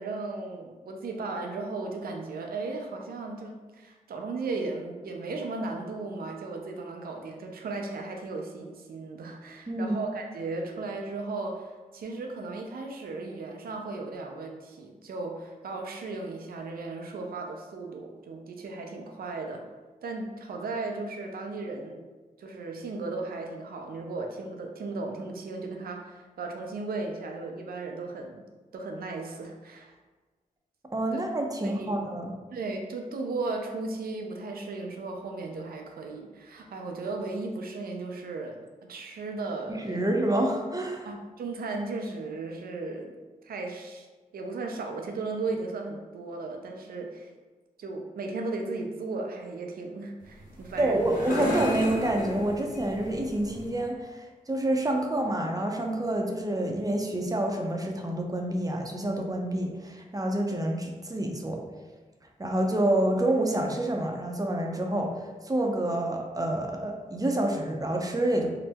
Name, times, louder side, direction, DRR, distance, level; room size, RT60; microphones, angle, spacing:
voice 1, 0.0-19.6 20.0-22.0 22.4-28.5 28.7-29.9 31.6-31.9 32.5-38.6 38.9-40.0 41.0-43.2 43.4-44.1 44.3-47.3 47.8-51.1, right 3 dB, 85° right, 2 dB, 0.4 m, -36 dB
voice 2, 9.7-10.0 30.9-32.3 39.7-41.1 50.8-61.6 62.4-68.5, right 1 dB, 25° right, 1 dB, 0.5 m, -28 dB
sound 1, 50.2-53.8, left 1 dB, 65° left, 0.9 m, -34 dB
2.8 x 2.0 x 3.3 m, 1.3 s
cardioid pair, 45°, 15 cm